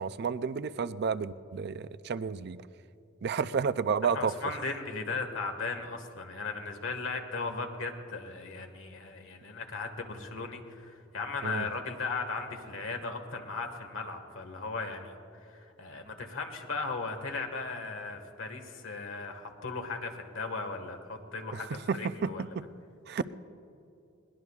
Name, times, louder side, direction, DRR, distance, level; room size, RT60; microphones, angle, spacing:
voice 1, 0.0-2.6 3.2-4.6 11.4-11.7 21.5-22.7 23.1-23.3, right 5 dB, 55° right, 14 dB, 0.4 m, -31 dB
voice 2, 4.1-22.4, left 4 dB, 75° left, 5 dB, 1.7 m, -37 dB
21.5 x 19.5 x 2.4 m, 2.7 s
head